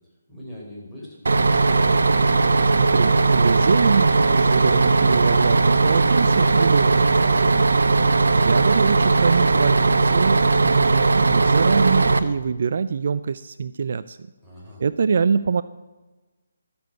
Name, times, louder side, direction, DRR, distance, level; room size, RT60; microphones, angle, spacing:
voice 1, 0.3-1.6 14.4-14.8, left 1 dB, ahead, -8 dB, 4.8 m, -41 dB
Bus, 1.3-12.2, right 3 dB, 70° right, 0.9 m, -18 dB
voice 2, 2.7-7.7 8.3-14.2 14.8-15.6, right 5 dB, 55° right, 15 dB, 0.4 m, -24 dB
13.5 x 7.1 x 8.8 m, 1.2 s
figure-of-eight pair, 145°, 0 cm